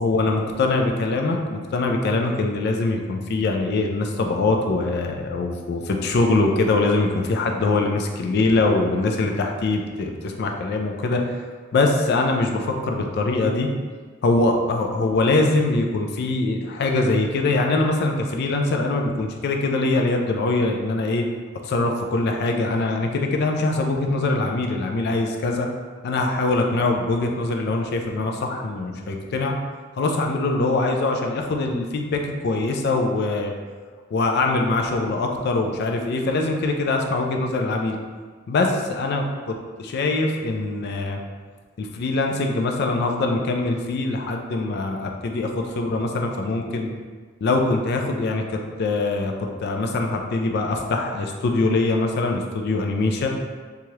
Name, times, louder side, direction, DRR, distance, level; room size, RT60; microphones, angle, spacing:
voice 1, 0.0-11.4 11.7-13.7 14.2-21.2 21.6-25.7 26.0-29.5 30.0-33.5 34.1-38.0 38.5-39.2 39.8-41.2 41.8-46.9 47.4-48.4 48.8-49.3 49.6-53.3, left 2 dB, 50° left, 2 dB, 0.3 m, -23 dB
2.8 x 2.3 x 3.1 m, 1.5 s
head